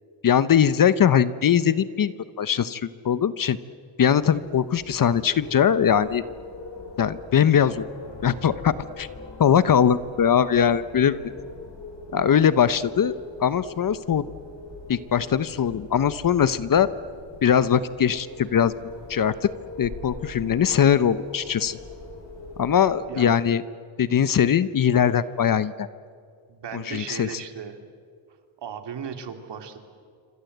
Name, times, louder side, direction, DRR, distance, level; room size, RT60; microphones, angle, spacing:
voice 1, 0.2-2.1 2.4-3.6 4.0-6.2 7.0-7.9 8.2-9.1 9.4-11.2 12.1-13.1 13.4-14.2 14.9-16.9 17.4-18.7 19.1-19.5 19.8-21.8 22.6-23.6 24.0-25.9 26.7-27.3, left 8 dB, 45° left, 15 dB, 0.9 m, -21 dB
Wind, 4.1-23.2, left 3 dB, 60° left, 7.1 m, -41 dB
voice 2, 26.5-27.9 28.6-29.8, right 7 dB, 60° right, 6 dB, 2.8 m, -36 dB
27.5 x 25.0 x 8.0 m, 2.2 s
cardioid pair, 125°, 48 cm